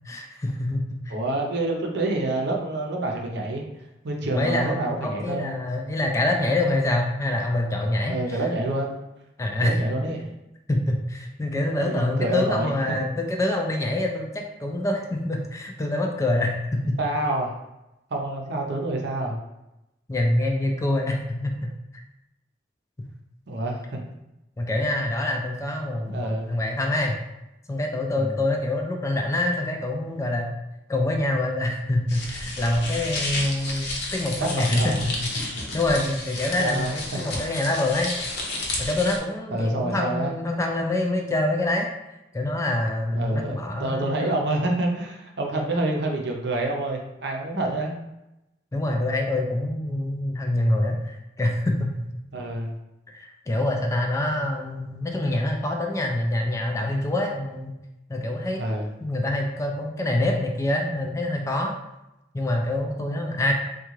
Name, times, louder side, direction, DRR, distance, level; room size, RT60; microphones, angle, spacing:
voice 1, 0.1-1.1 4.3-8.4 9.4-9.8 10.7-16.9 20.1-21.7 24.6-27.2 27.7-30.5 30.9-35.3 35.7-38.1 38.8-41.9 42.3-44.4 48.7-52.0 53.1-57.7 58.1-58.6 59.0-61.7 62.3-63.5, left 1 dB, 15° left, 2 dB, 0.3 m, -25 dB
voice 2, 1.1-3.6 4.0-5.6 8.1-9.0 9.6-10.3 11.7-13.1 17.0-17.5 18.1-19.4 23.5-24.0 26.1-26.6 28.1-28.4 34.4-35.0 36.6-37.2 39.5-40.3 43.1-48.0 52.3-52.7 58.6-58.9, right 2 dB, 65° right, 1 dB, 0.6 m, -27 dB
sound 1, 32.1-39.2, left 2 dB, 60° left, 0.7 m, -32 dB
3.6 x 2.3 x 3.0 m, 0.92 s
head